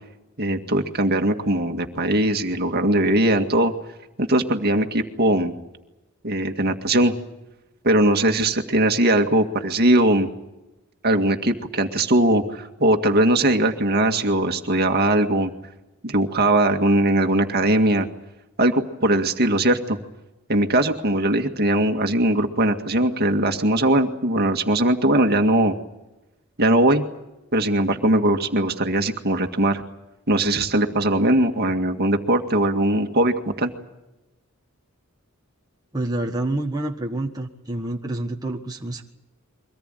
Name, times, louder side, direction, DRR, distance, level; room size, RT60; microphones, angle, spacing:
voice 1, 0.4-3.7 4.2-5.5 6.2-7.1 7.8-10.3 11.0-15.5 16.0-18.1 18.6-20.0 20.5-25.7 26.6-27.0 27.5-29.8 30.3-33.7, right 1 dB, 45° right, 5 dB, 2.0 m, -20 dB
voice 2, 35.9-39.0, right 1 dB, 15° right, 1 dB, 1.4 m, -28 dB
24.0 x 18.5 x 9.2 m, 0.97 s
head